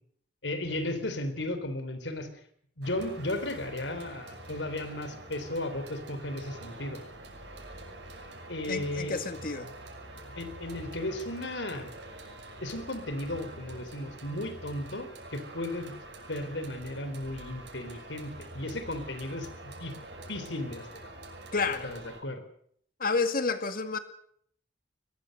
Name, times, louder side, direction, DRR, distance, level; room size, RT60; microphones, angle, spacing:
voice 1, 0.4-2.3 2.8-7.0 8.5-9.2 10.4-11.9 12.6-15.9 16.3-19.5 19.8-19.9 20.3-21.1 21.8-22.4, left 1 dB, 85° left, 9 dB, 3.9 m, -35 dB
sound 1, 2.8-22.2, right 2 dB, 75° right, 6.1 m, -46 dB
voice 2, 8.7-9.7 21.5-21.9 23.0-24.0, left 4 dB, 50° left, 9 dB, 2.1 m, -30 dB
22.0 x 20.5 x 6.7 m, 0.65 s
head